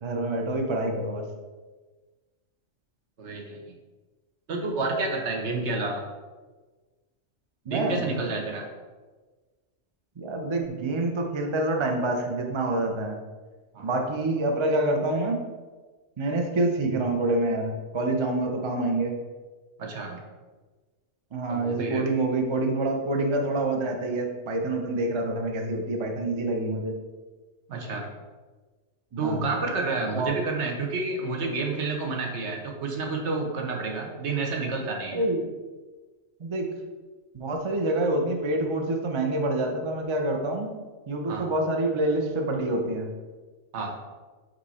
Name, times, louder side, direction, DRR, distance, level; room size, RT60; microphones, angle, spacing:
voice 1, 0.0-1.2 7.7-8.0 10.2-13.2 13.8-15.4 16.2-19.1 21.3-26.9 29.1-29.4 30.1-30.3 35.1-35.5 36.4-36.7 37.3-40.7 41.1-43.1, right 2 dB, 35° right, 3 dB, 0.4 m, -27 dB
voice 2, 3.2-3.7 4.5-6.1 7.7-8.7 13.7-13.9 19.8-20.2 21.5-22.1 27.7-28.1 29.2-35.2 41.3-41.4 43.7-43.9, right 3 dB, 60° right, 2 dB, 1.2 m, -29 dB
5.4 x 4.3 x 4.2 m, 1.3 s
omnidirectional pair, 1.3 m